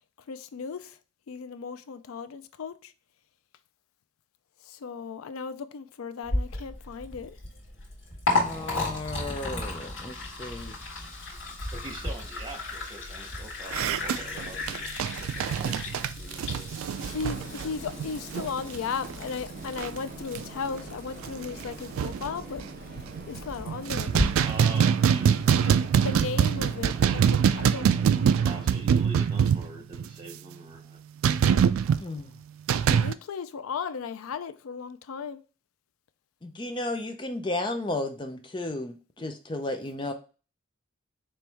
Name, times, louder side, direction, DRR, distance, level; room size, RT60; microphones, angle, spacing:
voice 1, 0.3-1.0 1.3-2.9 4.6-7.4 16.2-16.3 17.0-22.6 23.3-24.1 25.7-25.8 26.0-27.9 32.9-35.4, left 5 dB, 85° left, 0.4 m, -36 dB
Liquid, 6.2-24.2, left 2 dB, 65° left, 1.7 m, -35 dB
voice 2, 8.4-10.8 32.0-32.3 36.4-40.1, left 2 dB, 20° left, 0.5 m, -34 dB
voice 3, 11.7-14.9 15.2-16.7 24.4-26.1 28.4-31.5 39.2-39.3, right 2 dB, 20° right, 0.9 m, -44 dB
sound 1, 13.7-18.8 19.0-19.2 19.6-20.0 20.3-20.4 20.9-21.0 21.2-22.3 22.9-23.4 23.7-30.1 31.2-32.0 32.7-33.1, right 8 dB, 85° right, 0.3 m, -24 dB
sound 2, 16.9-28.7, right 2 dB, 45° right, 1.2 m, -44 dB
4.5 x 3.1 x 3.4 m
head